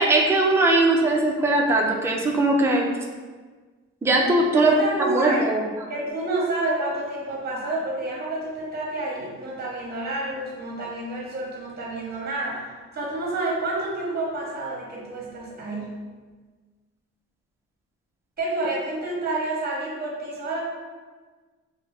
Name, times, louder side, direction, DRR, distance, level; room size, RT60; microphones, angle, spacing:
voice 1, 0.0-2.9 4.0-5.7, right 2 dB, 10° right, 0 dB, 0.3 m, -20 dB
voice 2, 4.5-5.5 5.9-12.6 12.9-15.9 18.4-20.6, right 2 dB, 30° right, -3 dB, 0.8 m, -29 dB
2.5 x 2.0 x 3.2 m, 1.4 s
cardioid pair, 90°, 30 cm